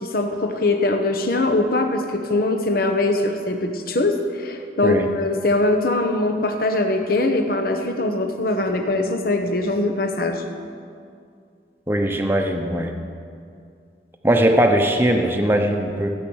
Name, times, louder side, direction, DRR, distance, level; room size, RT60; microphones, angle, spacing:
voice 1, 0.0-10.4, left 2 dB, 55° left, 5 dB, 1.1 m, -22 dB
voice 2, 11.9-12.9 14.2-16.1, right 1 dB, 15° right, 3 dB, 0.9 m, -19 dB
15.5 x 8.9 x 6.4 m, 2.3 s
head